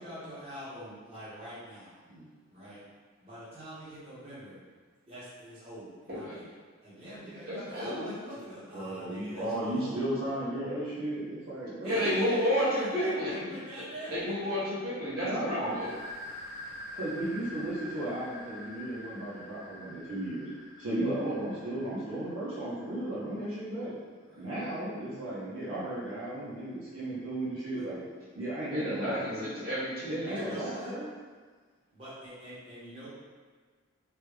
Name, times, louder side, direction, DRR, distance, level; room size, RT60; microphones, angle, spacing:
voice 1, 0.0-2.0 2.5-2.8 3.2-4.6 5.0-6.5 6.8-10.0 11.8-14.5 24.3-24.5 27.7-27.9 30.2-31.0 31.9-33.1, equal, 25° right, -12 dB, 1.1 m, -44 dB
voice 2, 7.5-8.2 11.8-13.4 14.1-15.9 28.7-30.6, equal, 45° right, -11 dB, 1.4 m, -31 dB
voice 3, 8.7-12.2 13.3-13.4 15.2-15.8 16.9-20.5 20.8-23.9 24.4-28.0 28.3-29.5 30.0-31.1, right 1 dB, 80° right, -9 dB, 0.8 m, -35 dB
sound 1, 15.7-23.1, left 1 dB, 65° left, 0.6 m, -46 dB
3.3 x 2.2 x 3.2 m, 1.5 s
head